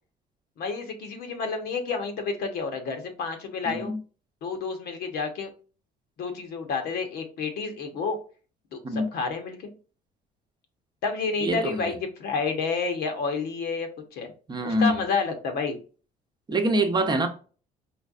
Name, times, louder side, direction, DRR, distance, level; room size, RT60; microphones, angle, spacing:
voice 1, 0.6-3.9 4.4-5.5 6.2-8.2 8.7-9.7 11.0-14.3 14.6-15.8, left 4 dB, 75° left, 1.2 m, -30 dB
voice 2, 3.6-4.0 8.8-9.1 11.4-11.9 14.5-15.0 16.5-17.3, right 1 dB, 25° right, 0.8 m, -25 dB
4.5 x 3.2 x 2.5 m
cardioid pair, 110°, 17 cm